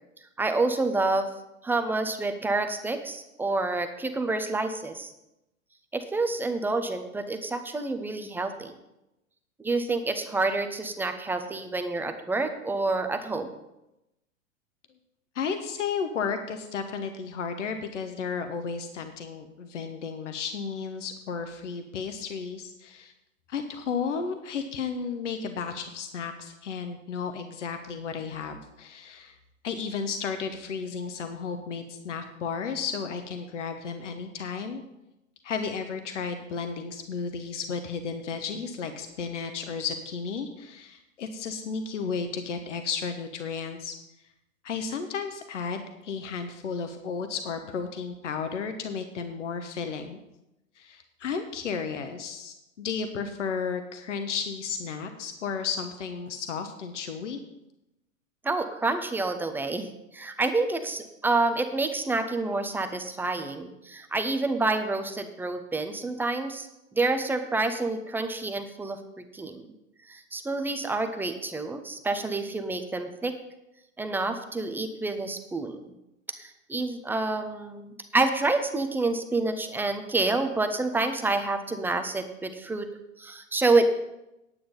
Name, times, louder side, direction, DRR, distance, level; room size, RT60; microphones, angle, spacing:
voice 1, 0.4-1.3 1.6-5.1 5.9-8.7 9.6-13.5 58.4-66.7 66.9-69.0 69.3-69.7 70.1-73.3 74.0-75.9 76.4-82.9 83.2-83.9, right 3 dB, 5° right, 7 dB, 0.6 m, -28 dB
voice 2, 15.3-23.1 23.5-29.4 29.6-34.8 35.4-43.9 44.6-50.2 50.8-57.4, left 5 dB, 65° left, 7 dB, 1.2 m, -33 dB
9.8 x 8.6 x 5.4 m, 0.90 s
figure-of-eight pair, 105°, 39 cm